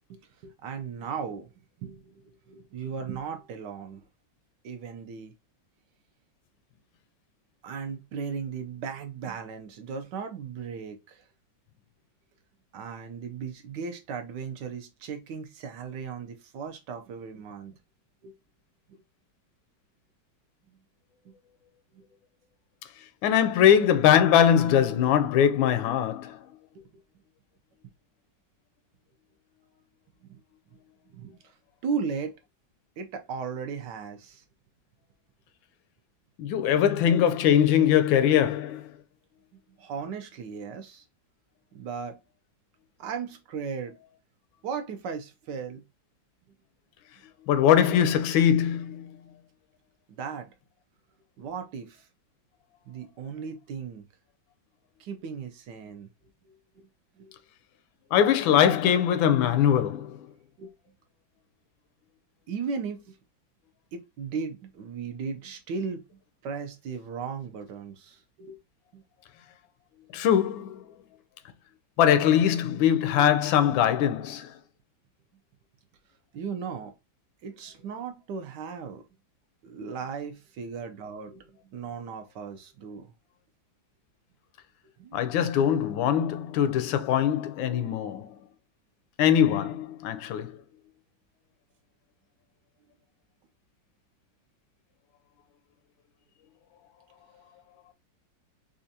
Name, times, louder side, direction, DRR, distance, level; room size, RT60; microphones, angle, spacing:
voice 1, 0.1-1.5 1.8-4.0 4.6-5.3 7.6-11.2 12.7-17.8 18.2-18.3 21.3-21.4 22.0-22.1 26.7-27.0 30.2-30.4 31.1-31.5 31.8-32.3 33.0-34.4 39.8-41.0 41.7-42.2 43.0-43.9 44.6-45.8 50.1-50.5 51.4-52.1 52.9-54.0 55.0-56.1 56.4-56.9 57.2-57.4 60.6-60.7 62.5-63.2 63.9-66.0 66.4-68.6 68.9-69.0 76.3-76.9 77.4-79.0 79.6-83.1 85.0-85.4, right 6 dB, 70° right, 1.2 m, -36 dB
voice 2, 23.2-26.4 36.4-38.9 47.5-49.1 58.1-60.2 70.1-70.8 72.0-74.5 85.1-88.3 89.2-90.6, left 9 dB, 85° left, 1.3 m, -22 dB
4.3 x 2.4 x 2.7 m
omnidirectional pair, 2.1 m